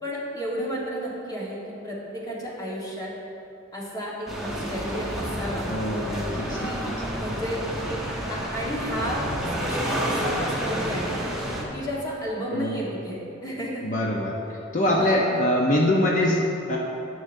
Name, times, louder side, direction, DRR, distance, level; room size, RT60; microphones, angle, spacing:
voice 1, 0.0-3.1 3.7-5.7 6.4-6.8 7.2-7.7 8.3-11.2 11.7-13.8 14.8-15.4, equal, 20° left, -5 dB, 1.3 m, -32 dB
sound 1, 4.3-11.6, equal, ahead, 0.8 m, -29 dB
voice 2, 5.7-6.9 12.5-12.8 13.8-16.8, left 1 dB, 40° left, -2 dB, 0.6 m, -24 dB
10.0 x 7.5 x 2.6 m, 2.8 s
head